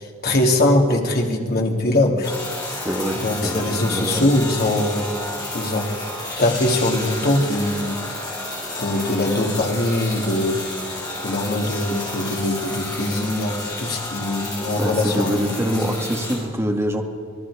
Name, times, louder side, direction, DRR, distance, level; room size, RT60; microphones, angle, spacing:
voice 1, 0.0-2.3 3.1-5.9 6.4-8.0 8.8-10.6 11.2-16.0, left 1 dB, 50° left, 1 dB, 2.9 m, -22 dB
sound 1, 2.2-16.4, left 2 dB, 20° left, 7.0 m, -31 dB
voice 2, 2.9-4.3 14.8-17.0, equal, 15° right, 2 dB, 1.9 m, -25 dB
27.5 x 19.0 x 5.0 m, 2.1 s
head